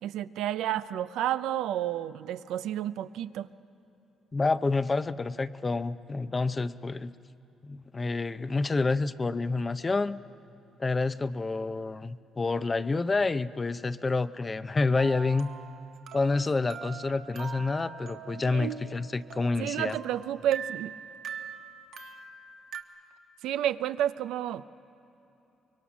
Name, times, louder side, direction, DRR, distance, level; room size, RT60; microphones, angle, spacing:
voice 1, 0.0-3.5 18.5-18.8 19.6-20.9 23.4-24.7, right 11 dB, 85° right, 13 dB, 0.5 m, -30 dB
voice 2, 4.3-7.1 7.6-10.2 10.8-15.5 16.1-20.0, left 3 dB, 25° left, 14 dB, 0.6 m, -28 dB
sound 1, 15.0-22.8, right 7 dB, 70° right, 1.2 m, -43 dB
25.0 x 22.5 x 6.2 m, 2.9 s
cardioid pair, 90°, 0 cm